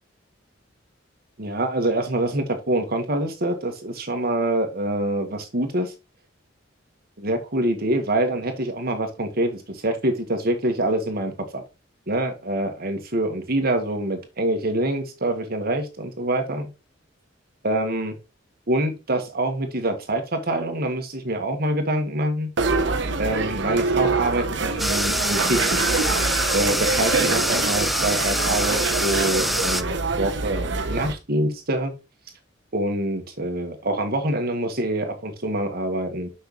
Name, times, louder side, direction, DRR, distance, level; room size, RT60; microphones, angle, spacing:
voice 1, 1.4-5.9 7.2-11.6 12.1-16.7 17.6-18.2 18.7-22.5 23.2-25.8 26.5-31.9 32.7-36.3, right 1 dB, 55° right, 5 dB, 1.6 m, -25 dB
sound 1, 22.6-31.1, right 3 dB, 70° right, 1.0 m, -25 dB
sound 2, 24.8-29.8, equal, ahead, 0.4 m, -25 dB
6.3 x 5.6 x 3.1 m, 0.27 s
head